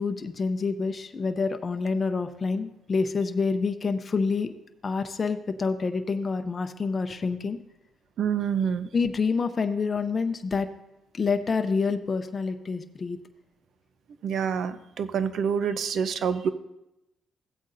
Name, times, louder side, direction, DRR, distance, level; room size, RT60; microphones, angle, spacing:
voice 1, 0.0-4.5 4.8-7.6 8.9-10.7 11.1-13.2, left 4 dB, 35° left, 7 dB, 0.6 m, -27 dB
voice 2, 8.2-8.9 14.2-16.5, right 7 dB, 65° right, 12 dB, 0.6 m, -27 dB
15.5 x 8.2 x 2.6 m, 0.91 s
cardioid pair, 90°, 0 cm